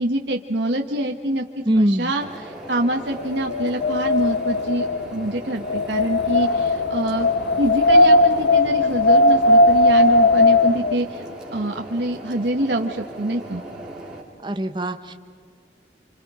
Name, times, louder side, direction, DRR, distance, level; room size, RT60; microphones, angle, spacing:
voice 1, 0.0-7.3 7.6-11.2 11.5-13.6, right 1 dB, 80° right, 2 dB, 1.4 m, -25 dB
voice 2, 1.6-2.1 14.4-15.1, right 1 dB, 25° right, 7 dB, 1.0 m, -22 dB
sound 1, 2.2-14.2, right 1 dB, 5° right, 4.1 m, -38 dB
Wind, 3.0-11.0, left 2 dB, 85° left, 1.0 m, -18 dB
30.0 x 26.5 x 5.0 m, 2.1 s
head